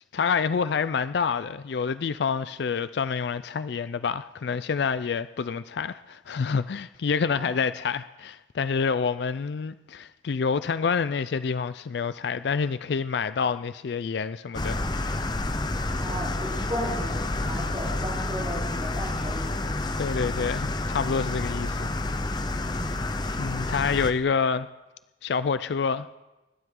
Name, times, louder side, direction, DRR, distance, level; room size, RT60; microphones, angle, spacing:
voice 1, 0.1-14.8 20.0-21.9 23.4-24.7 25.2-26.1, left 5 dB, 65° left, 0.4 m, -27 dB
sound 1, 14.5-24.1, left 2 dB, 25° left, 0.7 m, -29 dB
voice 2, 16.0-19.6 22.5-23.0, equal, 25° right, 3.6 m, -35 dB
24.0 x 12.5 x 3.8 m
head